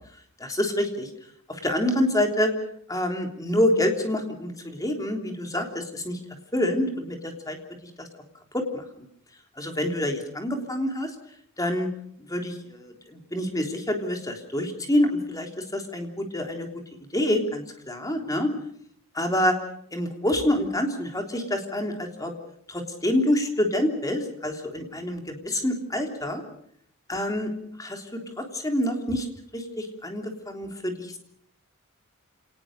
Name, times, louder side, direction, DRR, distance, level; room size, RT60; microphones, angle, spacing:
voice 1, 0.4-1.1 1.5-2.5 2.9-6.2 6.5-7.6 8.0-8.1 8.5-8.8 9.6-11.1 11.6-11.9 12.2-16.7 17.1-18.5 19.1-19.5 19.9-22.3 22.7-26.4 27.1-27.5 27.8-29.3 29.5-31.2, left 1 dB, 15° left, 4 dB, 3.4 m, -27 dB
29.0 x 19.0 x 6.7 m, 0.67 s
head